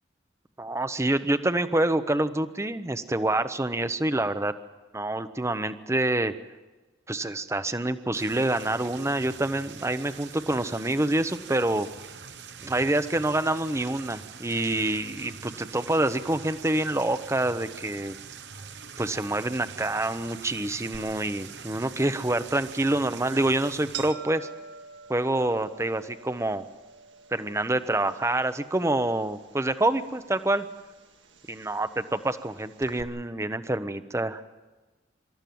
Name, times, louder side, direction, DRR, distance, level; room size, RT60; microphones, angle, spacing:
voice 1, 0.6-4.5 4.9-6.3 7.1-11.9 12.6-18.2 19.0-24.5 25.1-26.6 27.3-30.7 31.5-31.9 32.2-34.4, right 1 dB, 15° right, 11 dB, 0.8 m, -27 dB
sound 1, 8.1-24.1, right 6 dB, 70° right, 1.0 m, -44 dB
sound 2, 20.9-33.0, right 6 dB, 85° right, 1.9 m, -47 dB
26.5 x 13.5 x 9.3 m, 1.2 s
head